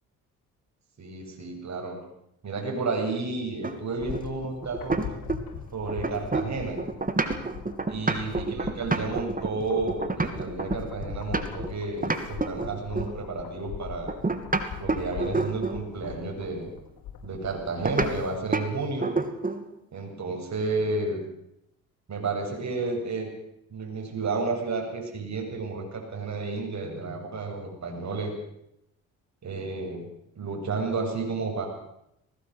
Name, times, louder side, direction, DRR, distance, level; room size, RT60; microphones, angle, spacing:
voice 1, 1.0-2.0 2.4-5.0 5.7-6.8 7.9-14.1 14.8-16.7 17.2-19.1 19.9-21.2 22.1-23.3 23.7-28.3 29.4-30.1 30.3-31.7, right 3 dB, 45° right, 1 dB, 7.7 m, -31 dB
sound 1, 3.6-5.6 5.9-11.7 12.0-13.2 14.1-15.9 17.8-18.1 18.5-18.7 19.0-19.7, right 3 dB, 20° right, 2.8 m, -28 dB
sound 2, 3.7-18.4 18.7-18.8, left 8 dB, 65° left, 5.7 m, -41 dB
20.0 x 18.0 x 8.0 m, 0.79 s
hypercardioid pair, 60°, 39 cm